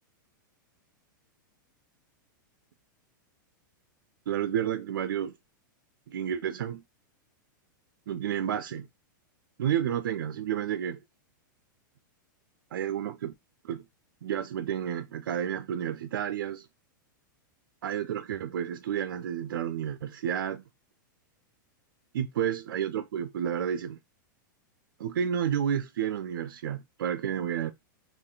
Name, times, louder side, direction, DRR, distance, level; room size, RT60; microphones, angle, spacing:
voice 1, 4.3-5.3 6.1-6.8 8.1-8.9 9.6-11.0 12.7-13.3 13.6-13.8 14.2-16.7 17.8-20.6 22.1-24.0 25.0-27.7, right 9 dB, 80° right, 0.5 m, -31 dB
3.2 x 2.5 x 3.8 m
hypercardioid pair, 140°, 11 cm